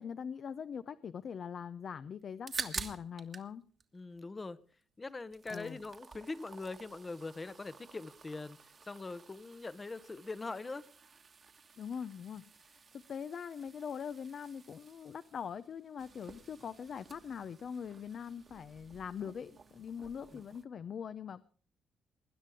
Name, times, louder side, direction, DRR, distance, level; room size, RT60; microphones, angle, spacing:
voice 1, 0.0-3.6 5.5-5.8 11.8-21.4, left 7 dB, 55° left, 0.6 m, -42 dB
sound 1, 2.2-3.5 3.8-4.8 5.1-20.6, right 5 dB, 40° right, 1.4 m, -49 dB
voice 2, 3.9-4.6 5.0-8.6 8.8-10.9 20.3-20.4, left 3 dB, 25° left, 0.9 m, -42 dB
20.0 x 10.0 x 4.8 m
cardioid pair, 90°, 0 cm